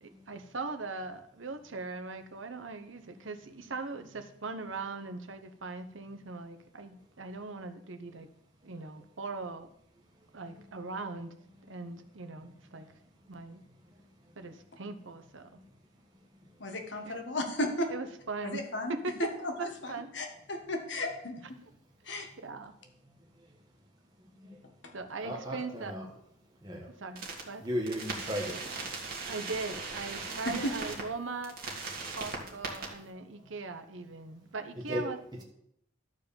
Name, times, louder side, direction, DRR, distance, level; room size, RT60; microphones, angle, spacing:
voice 1, 0.0-8.3 8.6-9.7 10.3-11.3 11.7-12.9 13.3-13.6 14.4-15.6 17.0-17.2 17.9-18.6 18.9-19.1 19.6-20.1 21.6-21.7 22.4-22.7 24.9-25.9 27.0-27.6 29.3-31.5 32.1-35.2, right 3 dB, 75° right, 9 dB, 0.9 m, -40 dB
voice 2, 16.6-17.9 18.4-18.9 19.4-19.7 20.1-21.6 22.1-22.3 24.8-24.9 30.4-30.7, left 1 dB, 60° left, 4 dB, 1.5 m, -34 dB
voice 3, 25.2-26.1 26.6-26.9 27.6-28.6 32.7-32.8 34.7-35.4, equal, 20° right, -1 dB, 1.3 m, -36 dB
sound 1, 27.2-27.4 27.9-31.0 31.4-32.9, right 4 dB, 50° right, 2.0 m, -38 dB
12.0 x 4.7 x 7.0 m, 0.74 s
head